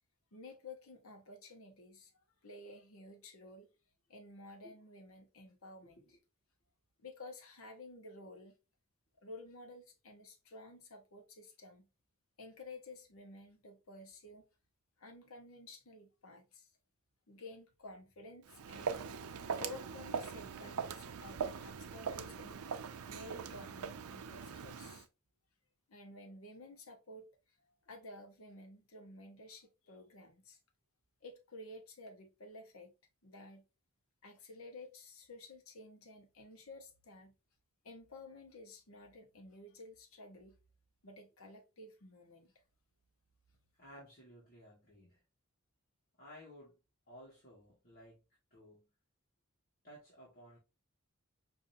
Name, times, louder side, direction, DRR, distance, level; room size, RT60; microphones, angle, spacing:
voice 1, 0.3-3.7 4.1-6.2 7.0-8.5 9.2-11.9 12.4-14.4 15.0-16.7 17.3-19.0 19.5-22.7 23.1-25.1 25.9-27.3 27.6-30.6 31.2-32.9 33.2-33.6 34.2-37.3 37.8-40.5 41.0-42.5, left 2 dB, 70° left, 1.0 m, -53 dB
voice 2, 5.8-6.2 43.7-45.2 46.2-46.8 47.1-48.2 48.5-48.9 49.8-50.6, equal, 40° left, 1.5 m, -56 dB
Walk footsteps, 18.5-25.1, right 6 dB, 80° right, 0.5 m, -41 dB
5.1 x 2.6 x 2.6 m
head